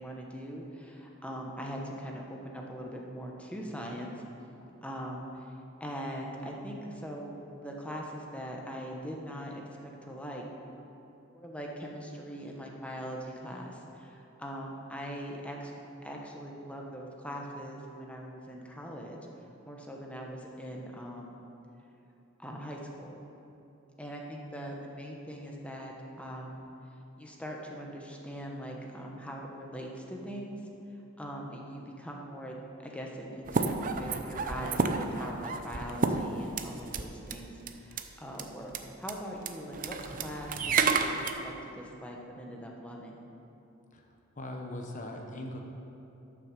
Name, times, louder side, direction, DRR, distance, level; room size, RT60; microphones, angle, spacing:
voice 1, 0.0-4.2 4.8-10.4 11.3-15.7 16.0-19.2 19.6-21.4 22.4-23.2 24.0-26.7 27.2-30.6 31.2-32.6 32.8-43.2, equal, 5° left, -1 dB, 1.2 m, -41 dB
sound 1, 33.5-37.0 37.3-37.4 37.7-38.0 38.4-38.5 38.7-38.8 39.1-39.2 39.5-41.3, right 4 dB, 45° right, 0.6 m, -30 dB
voice 2, 44.4-45.6, left 1 dB, 40° left, 2 dB, 1.0 m, -40 dB
12.0 x 6.1 x 6.7 m, 2.9 s
head